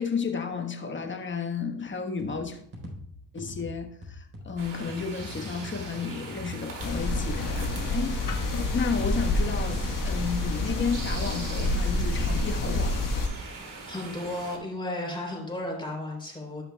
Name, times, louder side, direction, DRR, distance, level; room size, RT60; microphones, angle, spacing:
voice 1, 0.0-2.6 3.3-13.2, left 5 dB, 30° left, 1.3 m, -32 dB
sound 1, 2.2-10.0, left 1 dB, 35° right, 3.9 m, -43 dB
sound 2, 4.6-14.6, right 3 dB, 55° right, 2.3 m, -42 dB
sound 3, 6.8-13.3, left 2 dB, 55° left, 1.5 m, -28 dB
voice 2, 13.9-16.6, left 1 dB, 10° left, 3.5 m, -34 dB
16.5 x 5.7 x 2.3 m
supercardioid pair, 80°, 38 cm